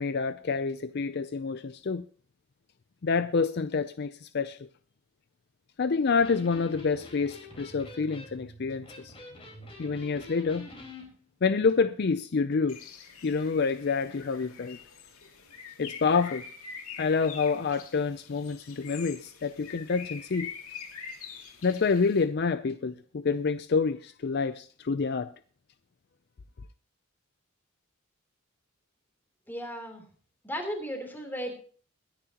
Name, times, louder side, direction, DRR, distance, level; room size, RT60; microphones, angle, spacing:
voice 1, 0.0-2.0 3.0-4.6 5.8-9.1 9.8-10.7 11.4-12.8 13.2-14.8 15.8-16.4 17.0-20.5 21.6-25.3, left 5 dB, 50° left, 0.5 m, -28 dB
Electric guitar, 6.2-11.1, left 2 dB, 25° left, 4.3 m, -46 dB
Bird, 12.7-22.2, left 6 dB, 90° left, 2.5 m, -45 dB
voice 2, 29.5-30.0 30.4-31.5, equal, 10° left, 3.2 m, -35 dB
22.5 x 10.0 x 2.9 m
head